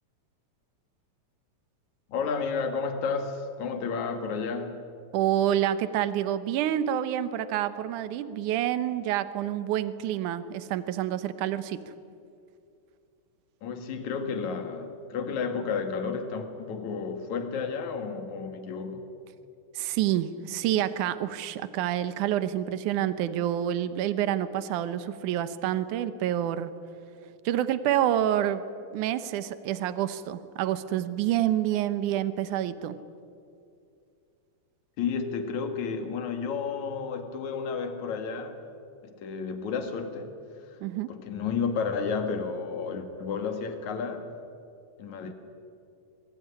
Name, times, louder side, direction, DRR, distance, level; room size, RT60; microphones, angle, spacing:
voice 1, 2.1-4.8 13.6-19.1 35.0-38.6 39.0-40.3 40.7-40.8 41.1-44.3 45.0-45.3, left 5 dB, 70° left, 6 dB, 3.3 m, -32 dB
voice 2, 5.1-11.9 19.7-26.7 27.5-28.6 28.9-33.0 40.8-41.1, right 11 dB, 80° right, 13 dB, 2.5 m, -28 dB
26.0 x 21.5 x 9.9 m, 2.5 s
omnidirectional pair, 3.5 m